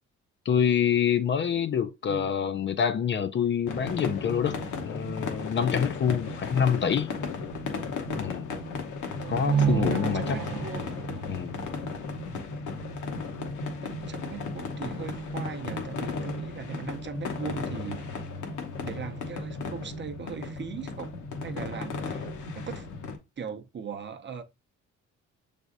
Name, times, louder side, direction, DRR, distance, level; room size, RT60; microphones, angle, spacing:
voice 1, 0.5-4.6 4.8-7.1 8.2-8.5 9.3-10.4 11.3-11.6, left 8 dB, 40° left, 0.4 m, -26 dB
sound 1, 3.7-23.2, left 4 dB, 80° left, 0.9 m, -35 dB
sound 2, 9.2-12.9, right 7 dB, 85° right, 0.7 m, -30 dB
voice 2, 9.9-10.9 13.8-18.1 18.8-21.1 21.4-22.3 22.5-22.9 23.4-24.4, right 6 dB, 40° right, 0.6 m, -39 dB
6.2 x 3.4 x 2.5 m
cardioid pair, 90°, 30 cm